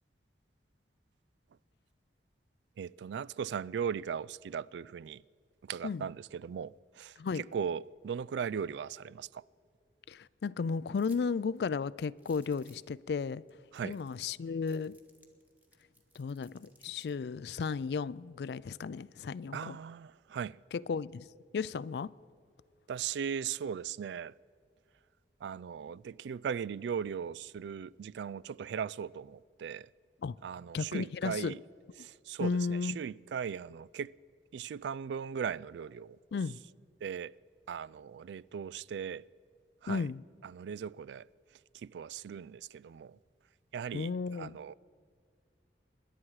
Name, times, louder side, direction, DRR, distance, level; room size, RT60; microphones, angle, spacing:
voice 1, 2.8-5.2 5.6-9.4 13.7-14.0 19.5-20.6 22.9-24.3 25.4-29.9 30.4-31.6 32.0-34.1 34.5-36.2 37.0-37.4 37.7-39.3 39.8-40.1 40.4-41.3 41.7-43.2 43.7-44.7, right 7 dB, 85° right, 0.3 m, -38 dB
voice 2, 10.1-13.4 13.8-15.0 16.2-19.8 20.7-21.3 21.5-22.1 30.2-30.4 30.7-31.6 32.4-33.0 36.3-36.6 39.9-40.2 43.9-44.6, left 5 dB, 70° left, 0.4 m, -34 dB
sound 1, 10.9-11.2 11.6-11.7 12.2-12.9 13.5-13.6 13.7-14.3 14.7-17.1, right 1 dB, 10° right, 1.4 m, -63 dB
26.0 x 11.5 x 4.8 m
head